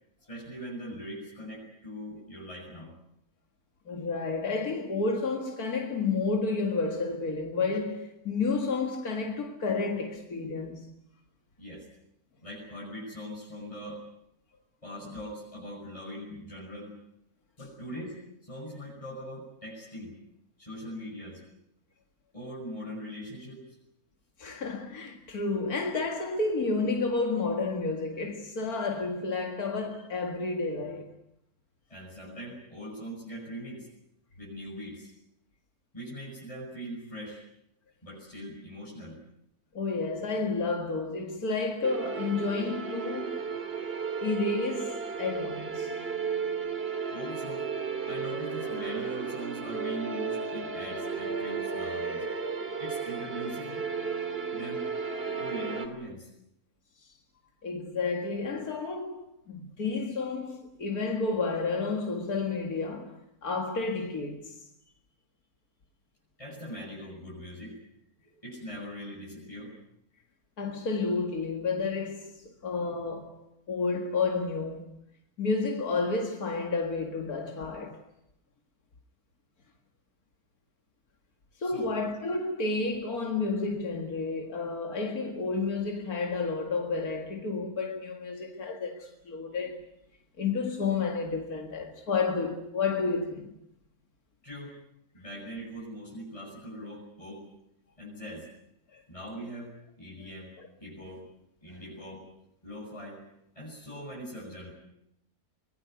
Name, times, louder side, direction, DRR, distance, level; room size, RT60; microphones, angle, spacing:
voice 1, 0.3-2.9 11.6-11.9 12.4-14.0 14.8-16.9 17.6-20.2 20.6-21.4 22.3-23.8 31.9-33.9 34.4-35.1 35.9-37.4 38.0-39.2 47.1-47.7 48.0-52.2 52.8-53.8 54.5-54.9 55.4-56.3 66.4-67.8 68.4-69.7 81.6-81.9 94.4-94.8 95.1-97.4 98.0-98.5 99.1-101.3 101.6-102.2 102.6-103.2 103.5-104.7, equal, 20° left, 7.8 m, -41 dB
voice 2, 3.9-10.9 15.0-15.1 24.4-31.1 39.7-43.4 44.2-45.9 57.6-64.6 70.6-75.0 75.4-78.0 81.6-89.8 90.4-93.5 98.9-99.0, left 4 dB, 85° left, 2.5 m, -31 dB
sound 1, 41.8-55.9, right 5 dB, 40° right, 2.8 m, -34 dB
24.5 x 20.5 x 9.5 m
omnidirectional pair, 1.5 m